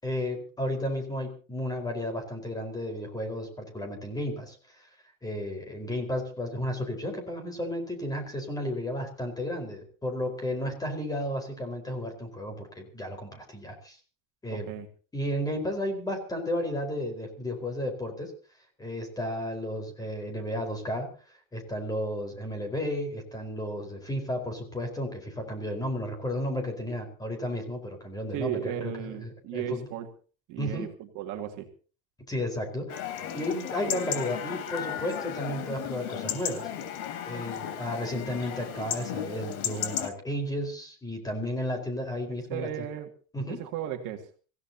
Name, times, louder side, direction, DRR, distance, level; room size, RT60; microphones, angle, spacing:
voice 1, 0.0-4.9 5.2-14.0 14.4-14.7 15.1-18.3 18.8-21.1 21.5-29.9 30.6-30.9 32.3-36.7 37.2-42.9 43.3-43.6, left 1 dB, 10° left, 5 dB, 4.6 m, -33 dB
voice 2, 14.5-14.9 28.3-30.1 30.5-31.7 42.5-43.1 43.5-44.3, right 11 dB, 50° right, 4 dB, 2.3 m, -35 dB
Chatter / Livestock farm animals working animals / Chirp tweet, 32.9-40.1, left 9 dB, 85° left, 3.8 m, -34 dB
26.0 x 16.5 x 2.9 m, 0.38 s
cardioid pair, 170°, 40 cm